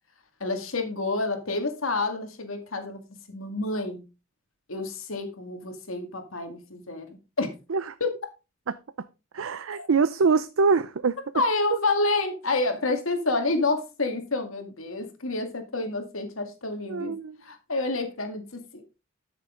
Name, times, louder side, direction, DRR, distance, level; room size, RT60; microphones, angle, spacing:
voice 1, 0.4-3.0 3.3-4.0 4.7-7.1 7.4-7.6 8.0-8.1 9.7-9.9 11.3-17.2 17.4-18.9, left 3 dB, 90° left, 2.2 m, -28 dB
voice 2, 9.3-11.2 16.8-17.4, right 4 dB, 85° right, 0.6 m, -24 dB
13.0 x 6.7 x 3.8 m
head